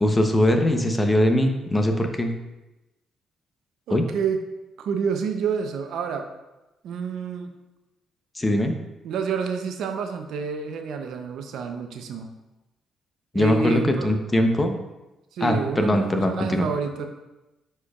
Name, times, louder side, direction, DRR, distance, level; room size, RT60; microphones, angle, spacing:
voice 1, 0.0-2.3 3.9-4.0 8.4-8.7 13.3-14.8 15.4-16.7, left 1 dB, 20° left, 5 dB, 0.7 m, -21 dB
voice 2, 3.9-4.4 4.8-6.3 6.8-7.5 9.0-12.3 13.3-14.2 15.3-17.1, right 6 dB, 80° right, 5 dB, 0.6 m, -28 dB
9.6 x 4.4 x 2.4 m, 1.0 s
cardioid pair, 90°, 0 cm